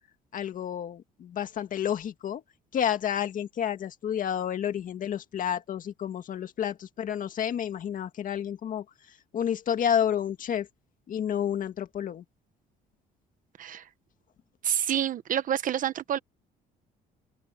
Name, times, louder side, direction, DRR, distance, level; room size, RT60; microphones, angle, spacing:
voice 1, 0.3-2.4 2.7-10.7 11.1-12.2, left 9 dB, 50° left, 2.0 m, -30 dB
voice 2, 14.6-16.2, right 10 dB, 50° right, 1.2 m, -28 dB
open air
cardioid pair, 110°, 17 cm